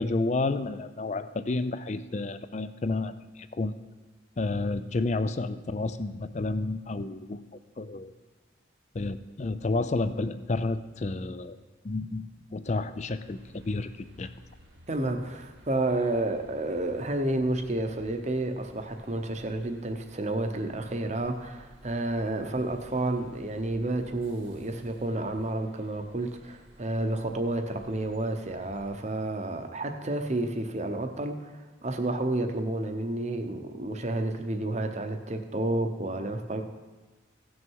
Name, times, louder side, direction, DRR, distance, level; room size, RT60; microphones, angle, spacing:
voice 1, 0.0-3.7 4.4-7.4 7.8-8.1 8.9-11.6 11.8-12.2 12.5-13.9 14.2-14.3, left 3 dB, 35° left, 12 dB, 0.4 m, -30 dB
sound 1, 13.2-28.9, right 1 dB, 85° right, 1.6 m, -55 dB
voice 2, 14.9-36.6, right 2 dB, 35° right, 6 dB, 0.8 m, -30 dB
16.0 x 6.3 x 4.6 m, 1.2 s
head